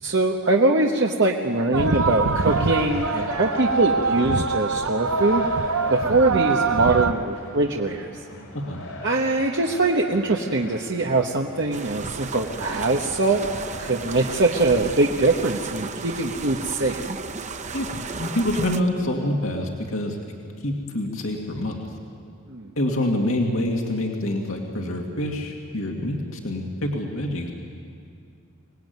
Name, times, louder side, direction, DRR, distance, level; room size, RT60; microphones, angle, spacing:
voice 1, 0.0-5.5 5.9-8.1 9.0-13.4 13.8-17.1 22.5-22.7, right 2 dB, 55° right, 0 dB, 1.2 m, -22 dB
sound 1, 1.7-7.1, right 4 dB, 85° right, 0.9 m, -24 dB
sound 2, 2.3-14.3, left 1 dB, 90° left, 5.3 m, -38 dB
sound 3, 11.7-18.8, right 4 dB, 35° right, 0.9 m, -34 dB
voice 2, 18.2-20.2 20.6-21.7 22.8-27.5, left 1 dB, 70° left, 1 dB, 2.4 m, -26 dB
25.0 x 19.5 x 9.4 m, 2.4 s
head